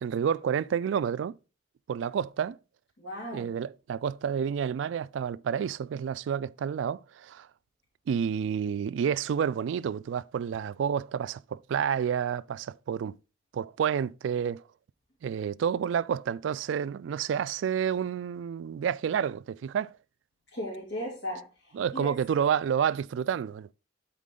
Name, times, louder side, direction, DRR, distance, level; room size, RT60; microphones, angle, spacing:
voice 1, 0.0-1.4 1.9-2.6 3.3-7.5 8.1-13.1 13.5-14.6 15.2-19.9 21.7-23.7, right 8 dB, 80° right, 0.3 m, -29 dB
voice 2, 3.0-3.5 20.5-22.1, equal, 85° left, 2.6 m, -37 dB
12.0 x 4.2 x 3.7 m
head